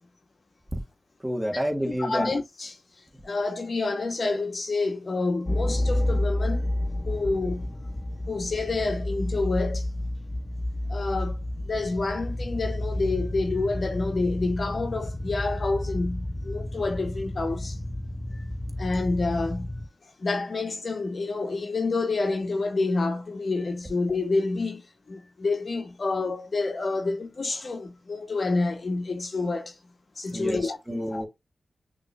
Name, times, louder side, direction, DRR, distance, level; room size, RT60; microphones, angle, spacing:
voice 1, 1.2-2.3 30.3-31.3, equal, 20° right, 1.6 m, -29 dB
voice 2, 2.0-2.8 3.2-6.7 7.1-7.7 8.3-9.9 10.9-11.4 11.7-17.8 18.3-18.4 18.8-19.7 20.2-29.8 30.2-31.2, left 3 dB, 60° left, 0.9 m, -28 dB
sound 1, 5.5-19.9, left 1 dB, 25° left, 0.5 m, -30 dB
5.9 x 3.0 x 2.3 m
cardioid pair, 40°, 0 cm